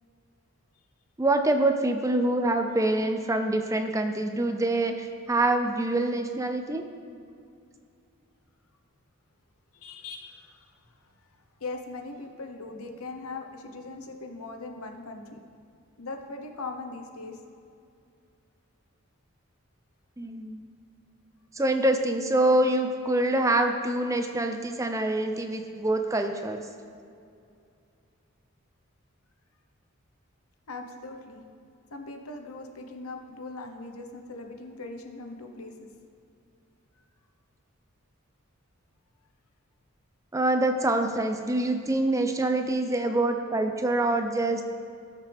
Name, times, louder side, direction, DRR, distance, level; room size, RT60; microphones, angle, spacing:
voice 1, 1.2-6.8 20.2-20.7 21.5-26.7 40.3-44.6, right 2 dB, 15° right, 6 dB, 0.5 m, -25 dB
voice 2, 9.7-10.6 11.6-15.4 16.0-17.4 30.7-31.4 31.9-35.7, left 3 dB, 85° left, 4 dB, 1.1 m, -40 dB
18.5 x 6.6 x 3.5 m, 2.4 s
head